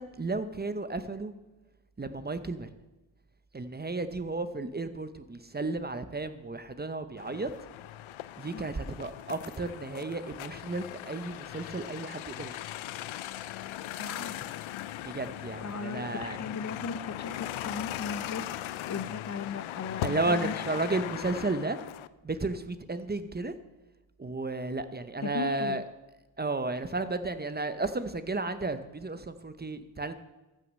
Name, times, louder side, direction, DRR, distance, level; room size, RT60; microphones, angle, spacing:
voice 1, 0.0-1.3 2.0-2.7 3.5-7.5 8.4-12.6 15.0-16.4 20.0-21.8 22.2-23.5 24.2-25.8 26.4-30.2, right 2 dB, 20° right, 11 dB, 0.7 m, -33 dB
sound 1, 7.2-22.1, left 13 dB, 85° left, 0.5 m, -39 dB
voice 2, 14.0-14.4 15.6-18.4 18.9-20.6 25.2-25.8, left 5 dB, 35° left, 13 dB, 0.6 m, -37 dB
14.0 x 6.3 x 6.4 m, 1.1 s
cardioid pair, 85°, 46 cm